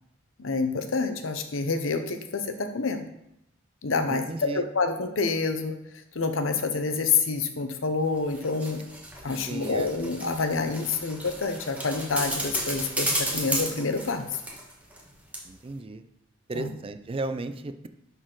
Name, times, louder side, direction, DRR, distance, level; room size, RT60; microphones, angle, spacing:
voice 1, 0.4-3.0 3.8-4.2 4.5-5.7 6.1-8.9 9.2-14.3 16.5-16.7, left 4 dB, 75° left, 7 dB, 0.8 m, -27 dB
voice 2, 4.1-4.7 9.5-9.9 15.4-16.0 16.5-17.9, right 2 dB, 30° right, 10 dB, 0.4 m, -34 dB
sound 1, 8.1-15.1 15.3-15.4, right 1 dB, 5° right, 1.4 m, -33 dB
11.0 x 4.2 x 3.9 m, 0.79 s
head